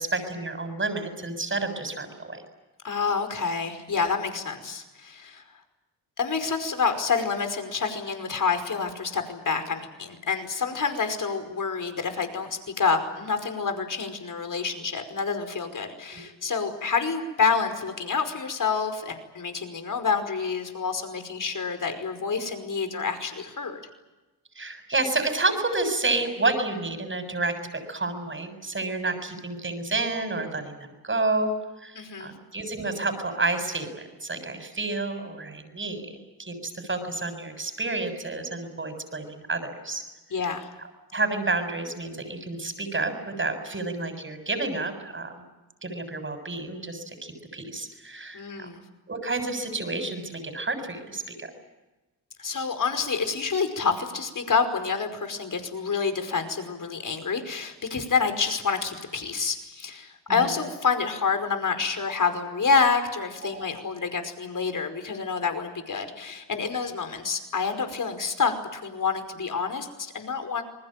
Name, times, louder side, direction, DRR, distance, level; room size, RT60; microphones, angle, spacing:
voice 1, 0.0-2.4 16.1-16.2 24.6-31.5 31.8-36.1 36.4-40.0 41.1-45.4 45.8-48.7 49.1-51.5 60.3-60.5 63.4-63.7, right 2 dB, 30° right, 8 dB, 7.2 m, -30 dB
voice 2, 2.8-5.4 6.2-23.8 31.9-32.3 40.3-40.7 48.3-48.8 52.4-70.6, left 5 dB, 50° left, 8 dB, 5.2 m, -28 dB
28.5 x 20.5 x 9.0 m, 1.1 s
cardioid pair, 75°, 41 cm